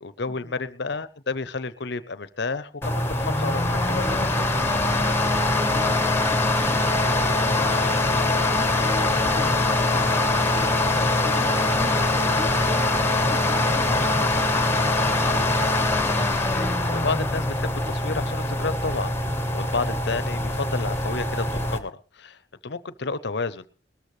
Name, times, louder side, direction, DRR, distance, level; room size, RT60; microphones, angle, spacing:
voice 1, 0.0-4.3 16.1-23.7, left 4 dB, 65° left, 15 dB, 0.8 m, -31 dB
sound 1, 2.8-21.8, left 2 dB, 15° left, 1.3 m, -23 dB
voice 2, 5.6-8.1 8.5-10.8 11.2-14.9, left 1 dB, 45° right, 0 dB, 2.8 m, -39 dB
20.0 x 13.5 x 3.3 m, 0.35 s
head